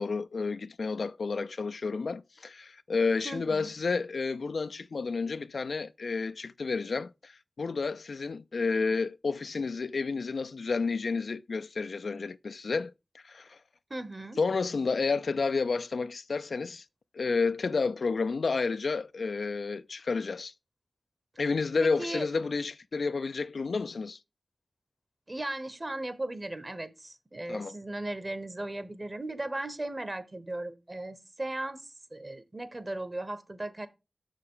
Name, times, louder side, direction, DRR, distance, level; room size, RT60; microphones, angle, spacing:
voice 1, 0.0-7.3 7.6-13.6 14.4-16.8 17.1-20.5 21.4-24.2 27.5-27.7, left 4 dB, 80° left, 0.3 m, -30 dB
voice 2, 3.2-3.7 13.9-14.4 21.8-22.3 25.3-33.9, right 1 dB, 35° right, 0.9 m, -37 dB
6.5 x 6.4 x 3.7 m
wide cardioid pair, 60°, 0 cm